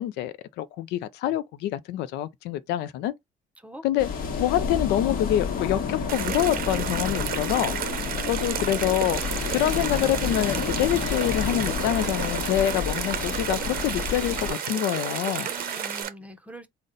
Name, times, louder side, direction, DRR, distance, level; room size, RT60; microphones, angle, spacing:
voice 1, 0.0-3.1 3.8-4.1 4.4-7.8 8.3-9.2 9.5-15.5, left 12 dB, 85° left, 0.4 m, -26 dB
sound 1, 4.0-14.5, left 6 dB, 60° left, 1.1 m, -30 dB
sound 2, 6.1-16.1, right 10 dB, 60° right, 0.6 m, -32 dB
voice 2, 7.9-8.9 15.5-16.7, equal, 10° right, 0.6 m, -44 dB
sound 3, 9.1-16.0, left 1 dB, 10° left, 1.0 m, -40 dB
4.0 x 2.1 x 3.8 m
cardioid pair, 110°, 17 cm